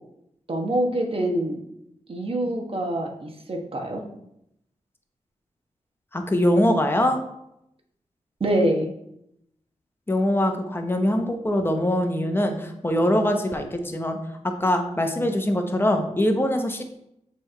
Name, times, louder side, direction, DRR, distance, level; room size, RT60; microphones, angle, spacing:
voice 1, 0.5-1.6 2.1-4.0 8.4-8.9, right 1 dB, 45° right, 2 dB, 1.2 m, -25 dB
voice 2, 6.1-7.2 10.1-14.2 14.6-16.8, left 1 dB, 15° left, 4 dB, 0.9 m, -23 dB
6.8 x 3.4 x 4.4 m, 0.78 s
cardioid pair, 80°, 13 cm